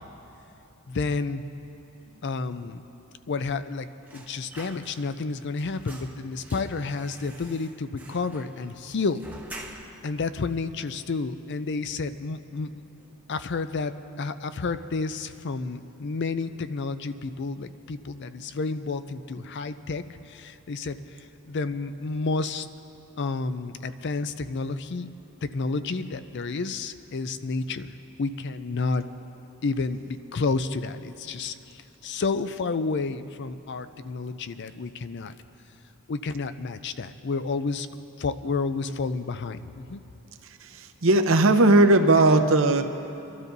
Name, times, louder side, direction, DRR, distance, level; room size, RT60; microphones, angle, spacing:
voice 1, 0.9-1.4 2.2-2.8 3.3-3.9 4.1-9.3 10.0-12.9 13.3-21.0 21.5-22.7 23.2-25.1 25.4-27.9 28.2-29.1 29.6-35.4 36.1-37.9 38.2-40.0, left 4 dB, 50° left, 12 dB, 0.4 m, -30 dB
sound 1, 4.1-5.3 5.6-10.1 10.5-10.6 10.9-11.7 12.0-12.2 12.5-13.2 13.5-13.7, right 2 dB, 5° right, 0.9 m, -47 dB
voice 2, 40.6-42.8, right 2 dB, 60° right, 7 dB, 0.8 m, -18 dB
29.5 x 12.5 x 2.7 m, 2.9 s
head